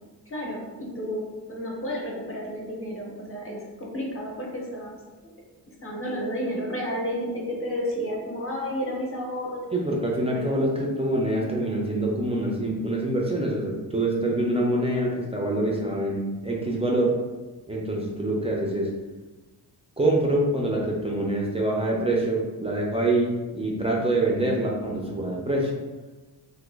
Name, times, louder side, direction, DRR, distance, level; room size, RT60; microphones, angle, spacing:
voice 1, 0.3-1.2 1.5-5.0 5.8-9.7 10.2-10.6, equal, 35° left, -2 dB, 0.6 m, -31 dB
voice 2, 9.7-17.1 17.7-18.9 20.0-25.7, right 1 dB, 15° right, -2 dB, 0.3 m, -25 dB
3.0 x 2.2 x 3.3 m, 1.2 s
wide cardioid pair, 175°, 39 cm